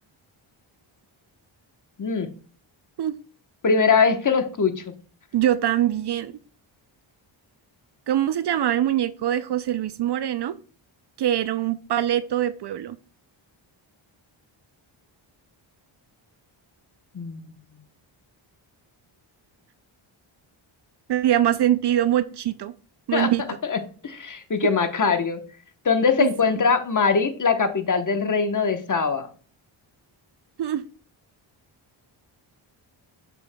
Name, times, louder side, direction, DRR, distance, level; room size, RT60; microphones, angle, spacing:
voice 1, 3.6-4.7 17.1-17.7 23.1-23.3 23.7-23.8 24.0-25.4 25.8-29.3, left 5 dB, 40° left, 8 dB, 1.1 m, -22 dB
voice 2, 5.3-6.3 8.1-10.5 11.2-13.0 21.1-22.7 23.1-23.6 26.2-26.6 30.6-30.8, right 11 dB, 55° right, 14 dB, 0.5 m, -23 dB
6.9 x 6.9 x 2.2 m, 0.40 s
cardioid pair, 65°, 50 cm